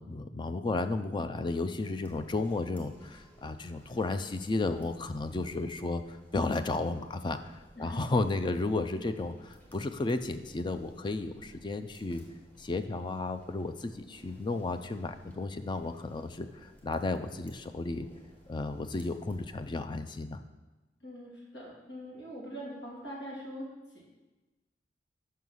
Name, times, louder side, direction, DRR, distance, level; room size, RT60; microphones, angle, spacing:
voice 1, 0.0-7.4 7.8-12.2 12.6-18.1 18.5-20.4, left 2 dB, 25° left, 9 dB, 0.4 m, -33 dB
sound 1, 1.8-19.9, equal, 10° left, 1.2 m, -58 dB
voice 2, 21.0-24.0, equal, 90° left, -5 dB, 2.5 m, -43 dB
5.6 x 5.4 x 6.2 m, 1.1 s
head